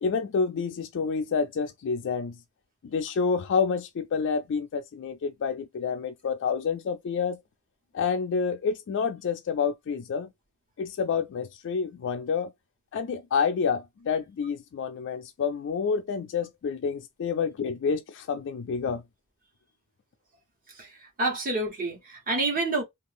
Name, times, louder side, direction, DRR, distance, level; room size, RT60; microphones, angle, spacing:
voice 1, 0.0-2.4 2.8-7.4 7.9-10.3 10.8-12.5 12.9-19.0, left 5 dB, 60° left, 0.3 m, -28 dB
voice 2, 20.8-22.8, right 2 dB, 40° right, 1.2 m, -28 dB
2.7 x 2.5 x 3.4 m
head